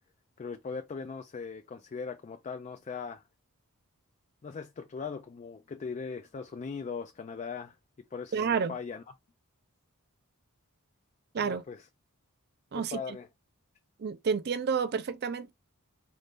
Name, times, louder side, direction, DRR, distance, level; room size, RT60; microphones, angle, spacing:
voice 1, 0.4-3.2 4.4-7.8 8.1-9.0 11.4-11.9 12.7-13.3, left 5 dB, 30° left, 0.4 m, -39 dB
voice 2, 8.3-8.8 11.3-11.6 12.7-13.0 14.0-15.5, right 6 dB, 45° right, 0.4 m, -30 dB
4.2 x 2.6 x 3.4 m
head